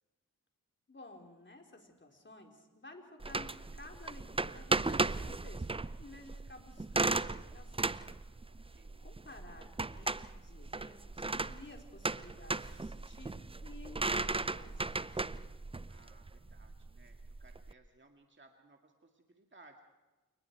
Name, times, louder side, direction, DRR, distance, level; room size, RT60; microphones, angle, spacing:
voice 1, 0.9-5.7 6.0-8.0 8.6-15.5, left 2 dB, 35° left, 2 dB, 4.1 m, -54 dB
sound 1, 3.2-17.7, right 3 dB, 15° right, 0.6 m, -36 dB
voice 2, 8.5-9.1 15.7-19.8, right 3 dB, 35° right, 3 dB, 2.0 m, -62 dB
28.5 x 20.0 x 4.7 m, 1.2 s
cardioid pair, 45°, 34 cm